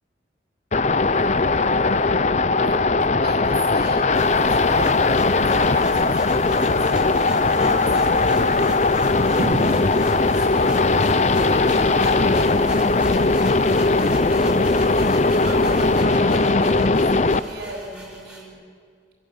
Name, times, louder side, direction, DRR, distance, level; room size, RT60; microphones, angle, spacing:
sound 1, 0.7-17.4, left 3 dB, 40° left, 0.6 m, -19 dB
voice 1, 1.0-2.2 2.5-13.5 14.7-18.6, right 1 dB, 85° right, 0 dB, 4.9 m, -36 dB
sound 2, 3.4-18.4, equal, 5° right, 4.1 m, -39 dB
sound 3, 4.1-16.0, right 3 dB, 40° right, 0.6 m, -37 dB
26.0 x 19.0 x 8.1 m, 2.2 s
head